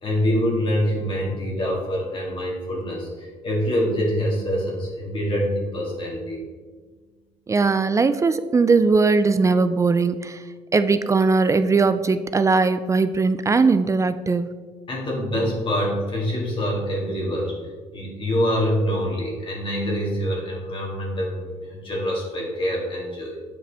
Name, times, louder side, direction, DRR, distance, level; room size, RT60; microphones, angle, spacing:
voice 1, 0.0-6.4 14.9-17.5 17.9-23.4, equal, 40° left, -3 dB, 2.0 m, -25 dB
voice 2, 7.5-10.5 10.7-14.6, right 4 dB, 25° right, 11 dB, 0.4 m, -19 dB
8.3 x 4.9 x 3.4 m, 1.5 s
supercardioid pair, 75°, 13 cm